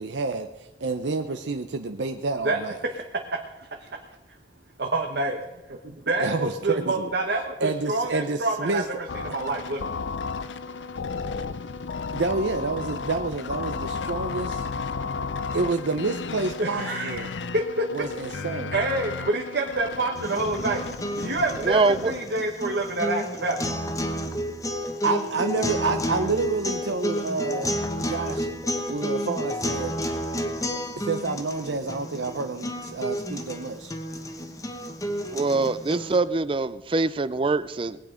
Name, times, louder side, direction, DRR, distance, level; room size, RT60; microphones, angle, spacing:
voice 1, 0.0-2.8 6.2-7.1 7.6-8.8 12.1-14.7 15.5-17.3 17.9-18.7 25.0-28.5 28.9-29.9 30.9-33.9, right 3 dB, 80° right, 7 dB, 0.7 m, -29 dB
voice 2, 4.8-5.4 5.7-9.9 16.6-18.1 18.7-20.8 21.2-23.6, right 2 dB, 60° right, 2 dB, 1.2 m, -27 dB
sound 1, 9.1-22.2, left 4 dB, 85° left, 0.6 m, -33 dB
sound 2, 20.2-36.2, equal, 20° left, 1.1 m, -31 dB
voice 3, 21.6-22.1 35.3-38.0, right 3 dB, 30° right, 16 dB, 0.5 m, -24 dB
20.0 x 8.7 x 5.1 m, 1.0 s
head